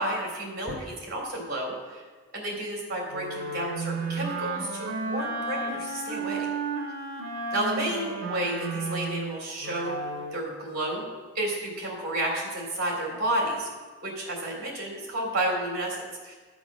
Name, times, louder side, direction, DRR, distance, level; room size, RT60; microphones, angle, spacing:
voice 1, 0.0-2.0 2.3-6.5 7.5-10.0 10.3-11.1 11.3-13.7 14.0-16.3, right 1 dB, 45° right, -1 dB, 3.5 m, -31 dB
Wind instrument woodwind instrument, 3.1-10.5, right 3 dB, 60° right, 2.3 m, -33 dB
12.5 x 6.1 x 6.1 m, 1.4 s
head